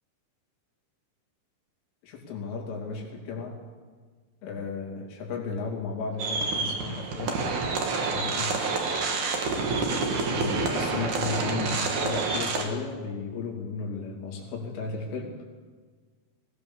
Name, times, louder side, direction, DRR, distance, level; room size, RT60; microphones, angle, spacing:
voice 1, 2.0-3.6 4.4-7.5 8.0-8.6 10.3-15.4, left 4 dB, 85° left, -1 dB, 5.6 m, -34 dB
sound 1, 6.2-12.6, right 4 dB, 50° right, 2.6 m, -28 dB
20.0 x 18.5 x 7.1 m, 1.5 s
omnidirectional pair, 5.5 m